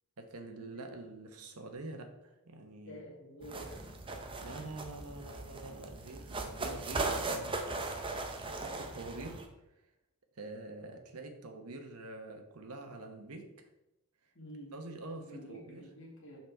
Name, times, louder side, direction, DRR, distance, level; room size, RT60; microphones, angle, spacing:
voice 1, 0.2-3.0 4.1-7.6 8.5-9.4 10.4-13.7 14.7-15.8, right 2 dB, 85° right, 5 dB, 1.0 m, -46 dB
voice 2, 2.8-4.0 14.4-14.8 15.3-16.4, equal, 60° left, -4 dB, 2.0 m, -49 dB
sound 1, 3.4-9.5, right 3 dB, 25° right, 0.6 m, -38 dB
5.7 x 5.1 x 4.5 m, 0.92 s
head